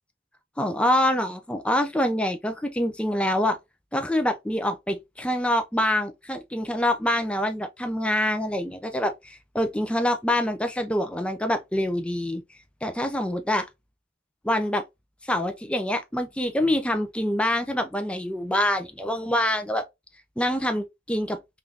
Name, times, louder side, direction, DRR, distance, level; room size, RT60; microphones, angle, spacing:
voice 1, 0.6-3.6 3.9-12.4 12.8-13.7 14.4-14.8 15.2-19.8 20.4-21.4, left 1 dB, 5° left, 0.4 m, -25 dB
3.6 x 2.4 x 2.7 m
head